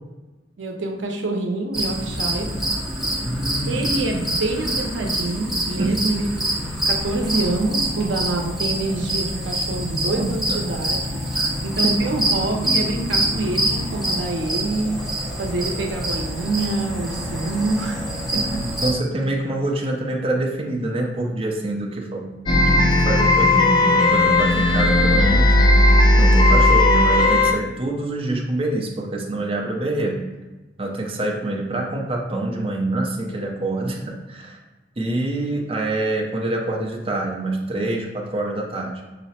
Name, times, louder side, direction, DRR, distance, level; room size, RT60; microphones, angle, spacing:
voice 1, 0.6-2.6 3.7-6.3 6.8-11.2 11.6-15.1 15.4-18.0 18.3-18.8, right 2 dB, 80° right, 2 dB, 0.6 m, -26 dB
sound 1, 1.7-18.9, right 1 dB, ahead, 0.8 m, -26 dB
voice 2, 3.2-3.9 5.8-6.0 9.7-10.7 11.3-11.5 18.6-25.6 26.2-30.2 30.8-34.6 35.0-39.0, right 2 dB, 30° right, -1 dB, 0.5 m, -26 dB
sound 2, 22.5-27.5, left 1 dB, 25° left, 0.4 m, -15 dB
5.6 x 2.1 x 4.1 m, 1.2 s
head